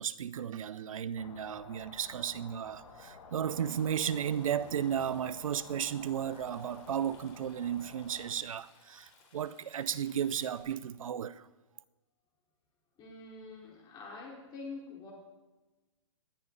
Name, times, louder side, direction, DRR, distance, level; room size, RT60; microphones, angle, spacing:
voice 1, 0.0-11.4, right 9 dB, 80° right, 0.7 m, -34 dB
sound 1, 1.2-8.3, left 5 dB, 70° left, 2.2 m, -52 dB
Stream, 3.6-10.6, left 5 dB, 50° left, 3.9 m, -63 dB
voice 2, 13.0-15.1, left 3 dB, 25° left, 4.4 m, -46 dB
19.0 x 11.0 x 4.0 m
hypercardioid pair, 140°, 17 cm